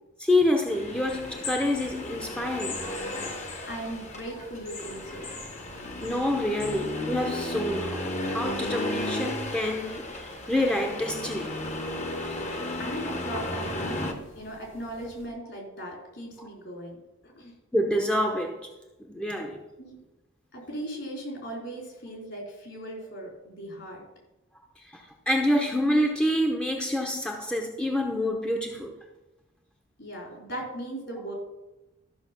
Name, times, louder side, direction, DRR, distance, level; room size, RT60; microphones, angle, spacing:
voice 1, 0.2-2.8 6.0-11.6 16.4-16.5 17.7-18.6 19.1-19.6 24.8-28.9, left 1 dB, 5° left, 0.8 m, -27 dB
Accelerating revving vroom, 0.7-14.1, left 1 dB, 35° left, 1.2 m, -34 dB
sound 1, 1.0-15.3, left 4 dB, 85° left, 3.4 m, -46 dB
voice 2, 3.7-5.3 12.8-14.0 14.4-17.0 17.2-17.5 19.8-20.0 20.5-24.0 30.0-31.3, right 1 dB, 60° left, 4.2 m, -38 dB
13.0 x 6.3 x 6.1 m
head